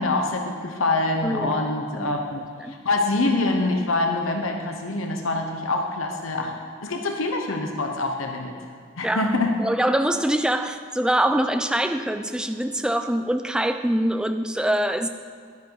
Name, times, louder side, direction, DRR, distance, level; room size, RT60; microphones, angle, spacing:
voice 1, 0.0-2.4 2.8-6.5 6.8-8.6 9.0-9.5, left 2 dB, 80° left, 3 dB, 1.0 m, -25 dB
voice 2, 1.2-2.2 2.6-2.8 9.0-9.3 9.6-15.1, right 1 dB, 5° right, 7 dB, 0.4 m, -24 dB
11.0 x 9.6 x 4.7 m, 2.1 s
head